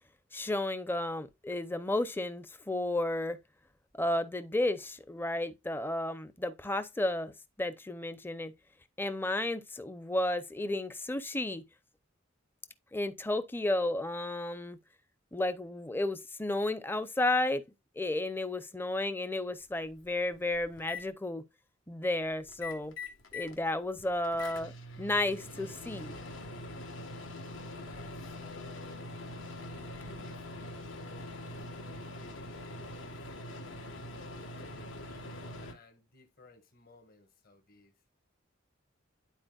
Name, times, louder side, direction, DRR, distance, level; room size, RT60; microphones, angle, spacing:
voice 1, 0.3-3.4 3.9-8.5 9.0-11.7 12.9-14.8 15.3-17.6 18.0-21.5 21.9-22.9 23.3-24.7 25.0-26.1, left 1 dB, 10° left, 0.6 m, -32 dB
Microwave oven, 19.5-19.6 20.0-21.0 22.5-23.6 23.9-35.7, left 2 dB, 70° left, 1.5 m, -43 dB
voice 2, 27.7-29.3 29.6-33.1 34.2-37.9, left 3 dB, 50° left, 1.8 m, -58 dB
11.5 x 4.2 x 2.4 m
head